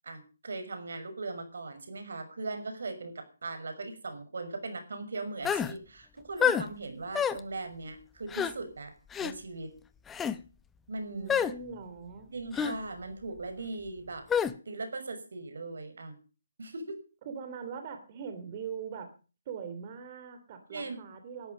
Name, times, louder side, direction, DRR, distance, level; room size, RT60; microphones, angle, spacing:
voice 1, 0.0-8.9 9.2-9.8 10.9-11.4 12.3-14.3 14.7-16.1 16.6-17.0 20.7-21.0, right 3 dB, 70° right, 8 dB, 6.2 m, -39 dB
sound 1, 5.4-5.7 6.4-6.7 7.1-7.4 8.3-8.5 9.1-9.3 10.1-10.4 11.3-11.5 12.5-12.8 14.3-14.5, left 8 dB, 10° left, 0.8 m, -27 dB
voice 2, 11.1-12.3 17.2-19.1 19.5-21.5, right 6 dB, 30° right, 7 dB, 3.0 m, -41 dB
19.0 x 13.5 x 5.4 m, 0.37 s
hypercardioid pair, 165°, 0 cm